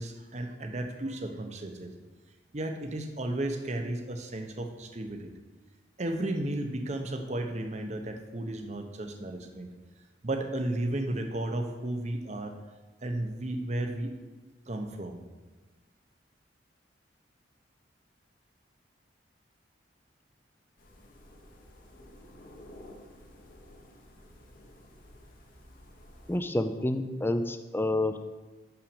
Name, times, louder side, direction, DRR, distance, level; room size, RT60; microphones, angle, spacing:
voice 1, 0.0-1.9 2.5-5.3 6.0-9.7 10.2-12.5 13.0-14.2 14.7-15.2, right 1 dB, 40° right, 5 dB, 0.8 m, -33 dB
sound 1, 20.8-26.4, left 1 dB, 50° left, 1.1 m, -52 dB
voice 2, 26.3-28.2, left 1 dB, 10° left, 9 dB, 0.4 m, -28 dB
6.4 x 5.8 x 7.0 m, 1.3 s
head